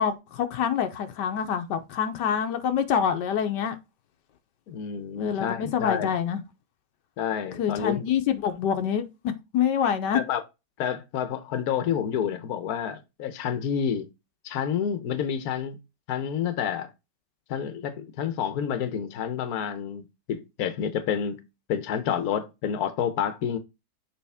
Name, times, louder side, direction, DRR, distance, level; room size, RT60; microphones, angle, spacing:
voice 1, 0.0-3.8 5.2-6.4 7.6-10.2, left 8 dB, 85° left, 1.4 m, -26 dB
voice 2, 4.7-6.1 7.2-8.0 10.1-10.4 10.8-14.1 14.4-15.8 16.1-16.9 17.5-21.4 21.7-23.6, left 8 dB, 65° left, 1.3 m, -29 dB
6.9 x 4.1 x 3.5 m
omnidirectional pair, 1.8 m